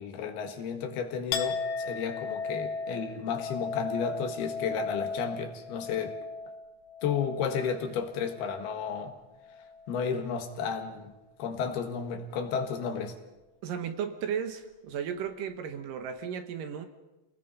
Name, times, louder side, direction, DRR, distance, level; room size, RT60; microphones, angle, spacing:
voice 1, 0.0-6.2 7.0-9.1 9.9-11.1 11.4-13.2, left 6 dB, 85° left, 6 dB, 3.7 m, -32 dB
Chink clink, 1.3-9.0 9.3-10.0, left 4 dB, 70° left, 1.9 m, -36 dB
voice 2, 13.6-16.9, right 8 dB, 70° right, 8 dB, 2.6 m, -35 dB
28.5 x 19.5 x 5.5 m, 1.0 s
omnidirectional pair, 4.4 m